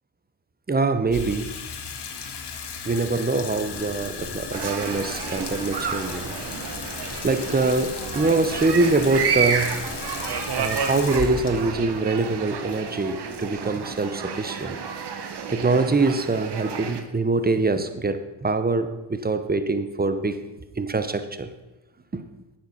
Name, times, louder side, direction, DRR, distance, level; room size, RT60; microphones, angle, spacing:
voice 1, 0.7-1.5 2.8-6.4 7.2-9.7 10.6-14.8 15.5-20.4 20.7-21.5 22.1-22.2, right 3 dB, 20° right, 10 dB, 1.0 m, -24 dB
Water tap faucet / Sink (filling or washing), 1.1-13.4, left 6 dB, 60° left, 1.4 m, -36 dB
sound 1, 3.6-11.9, left 1 dB, 20° left, 2.8 m, -41 dB
sound 2, 4.5-17.0, right 6 dB, 65° right, 1.1 m, -31 dB
9.3 x 7.7 x 5.5 m, 1.0 s
cardioid pair, 60°, 45 cm